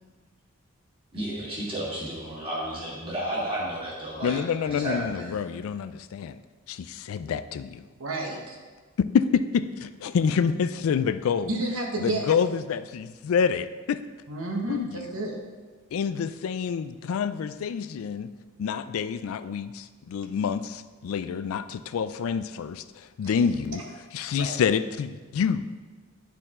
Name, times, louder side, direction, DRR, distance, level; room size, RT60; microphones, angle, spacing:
voice 1, 1.1-5.4, right 1 dB, 25° right, -6 dB, 2.0 m, -32 dB
voice 2, 4.2-6.4 6.7-7.8 9.1-11.5 12.0-14.0 14.7-15.1 15.9-18.3 18.6-23.8 24.1-25.7, left 6 dB, 75° left, 12 dB, 0.3 m, -27 dB
voice 3, 8.0-8.6 11.5-12.3 14.3-15.4 23.2-23.4 23.7-23.8 24.2-24.6, right 2 dB, 70° right, 0 dB, 1.1 m, -31 dB
9.8 x 4.6 x 3.7 m, 1.4 s
head